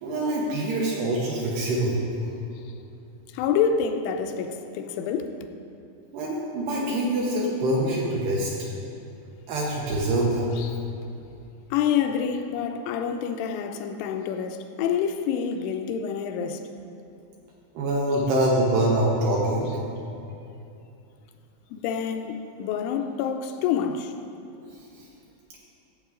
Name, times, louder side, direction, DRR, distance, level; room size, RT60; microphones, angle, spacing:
voice 1, 0.0-1.9 6.1-8.5 9.5-10.4 17.8-19.7, right 1 dB, 75° right, 2.6 m, -24 dB
voice 2, 3.3-5.3 10.6-10.8 11.7-16.6 21.7-24.1, left 7 dB, 85° left, 2.9 m, -27 dB
14.5 x 7.8 x 3.7 m
omnidirectional pair, 5.6 m